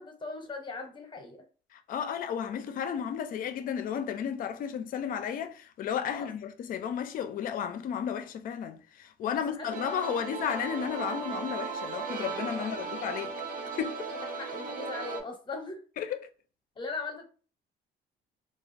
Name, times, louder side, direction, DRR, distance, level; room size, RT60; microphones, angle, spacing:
voice 1, 0.0-1.4 6.1-6.3 9.5-10.3 12.5-13.0 14.1-15.8 16.8-17.2, left 3 dB, 30° left, 0.8 m, -40 dB
voice 2, 1.7-13.4 13.8-14.1 16.0-16.3, left 8 dB, 55° left, 0.5 m, -33 dB
sound 1, 9.7-15.2, right 4 dB, 55° right, 0.8 m, -36 dB
2.3 x 2.3 x 3.2 m
cardioid pair, 110°, 17 cm